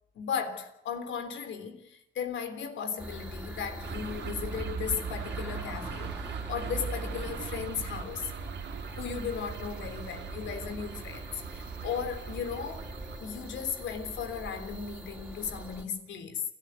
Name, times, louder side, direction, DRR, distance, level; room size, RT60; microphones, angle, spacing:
voice 1, 0.2-8.3 8.8-12.9 13.2-16.4, left 7 dB, 70° left, 3.5 m, -36 dB
sound 1, 3.0-15.8, right 1 dB, 5° right, 4.1 m, -43 dB
sound 2, 3.8-13.2, right 7 dB, 60° right, 2.2 m, -39 dB
29.0 x 13.0 x 9.7 m
cardioid pair, 90°, 20 cm